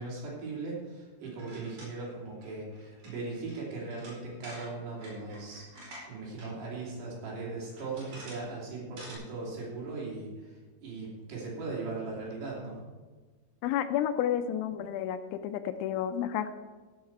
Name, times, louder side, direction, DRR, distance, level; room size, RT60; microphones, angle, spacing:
voice 1, 0.0-12.9, right 3 dB, 60° right, -4 dB, 4.8 m, -39 dB
sound 1, 1.2-6.5 6.8-6.9 7.6-8.5 8.8-9.2, right 1 dB, 45° right, 6.0 m, -49 dB
voice 2, 13.6-16.5, left 10 dB, 85° left, 9 dB, 2.8 m, -31 dB
16.0 x 7.4 x 4.6 m, 1.3 s
omnidirectional pair, 5.8 m